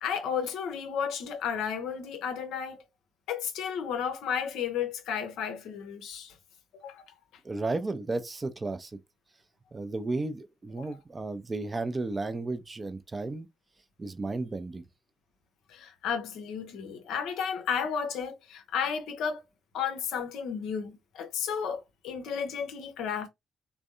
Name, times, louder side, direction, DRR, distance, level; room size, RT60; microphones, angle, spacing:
voice 1, 0.0-2.8 3.3-6.4 6.7-7.1 10.8-10.9 15.7-19.4 19.7-23.3, left 7 dB, 60° left, 0.6 m, -33 dB
voice 2, 7.4-8.9 9.7-13.5 14.0-14.8, right 3 dB, 30° right, 0.5 m, -33 dB
3.4 x 2.2 x 2.5 m
figure-of-eight pair, 40°, 0 cm